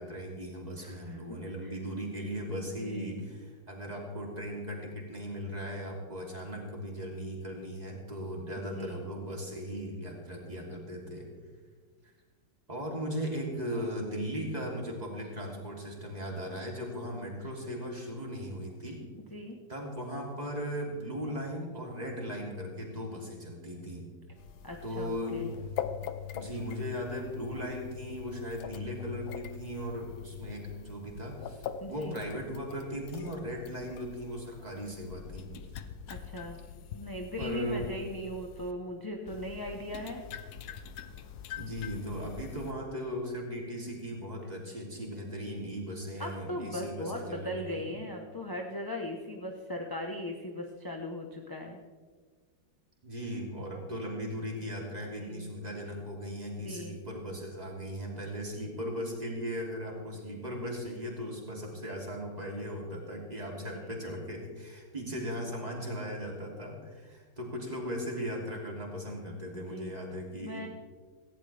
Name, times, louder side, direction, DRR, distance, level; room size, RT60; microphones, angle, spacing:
voice 1, 0.0-11.3 12.7-19.0 19.7-24.1 24.8-25.6 26.3-35.5 36.4-36.5 37.4-37.9 41.6-47.9 53.0-70.7, equal, 20° right, -2 dB, 3.1 m, -38 dB
voice 2, 0.8-1.8 2.5-3.2 8.6-9.0 19.2-19.6 24.6-25.5 31.8-32.2 36.1-36.6 36.9-40.2 46.2-51.8 55.2-55.5 56.6-57.0 69.5-69.9 70.4-70.7, left 1 dB, 15° left, 1 dB, 0.8 m, -39 dB
sound 1, 24.4-38.7 39.3-42.7, left 8 dB, 65° left, 1.2 m, -43 dB
18.0 x 16.0 x 3.5 m, 1.5 s
omnidirectional pair, 2.0 m